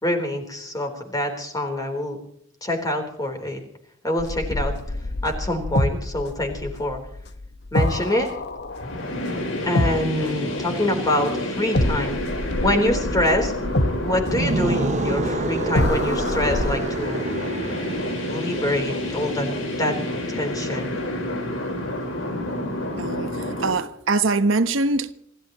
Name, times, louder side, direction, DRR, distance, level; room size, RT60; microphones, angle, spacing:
voice 1, 0.0-2.2 2.6-3.6 4.0-4.7 5.2-7.0 7.7-8.3 9.6-12.2 12.6-13.5 14.0-17.2 18.3-20.9, left 1 dB, 20° left, 3.8 m, -25 dB
sound 1, 4.2-11.3 11.7-16.8, left 1 dB, 60° left, 1.3 m, -27 dB
sound 2, 8.7-23.7, left 1 dB, 85° left, 4.5 m, -29 dB
sound 3, 14.2-19.2, right 3 dB, 35° right, 0.6 m, -29 dB
voice 2, 23.0-23.4 23.6-25.1, right 3 dB, 80° right, 1.1 m, -22 dB
27.5 x 14.5 x 3.1 m
head